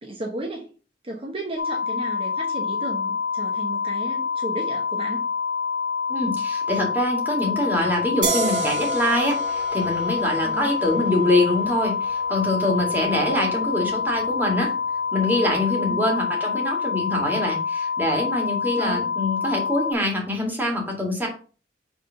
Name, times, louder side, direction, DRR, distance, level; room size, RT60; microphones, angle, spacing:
voice 1, 0.0-0.7 1.0-5.3 10.4-10.7 15.8-16.0 18.8-19.1, right 1 dB, 30° right, 0 dB, 0.9 m, -34 dB
sound 1, 1.6-19.9, left 5 dB, 80° left, 0.8 m, -27 dB
voice 2, 6.1-14.7 15.1-21.3, left 1 dB, 10° right, -1 dB, 2.1 m, -24 dB
sound 2, 8.2-15.5, right 4 dB, 75° right, 1.4 m, -34 dB
5.4 x 3.6 x 5.7 m, 0.38 s
head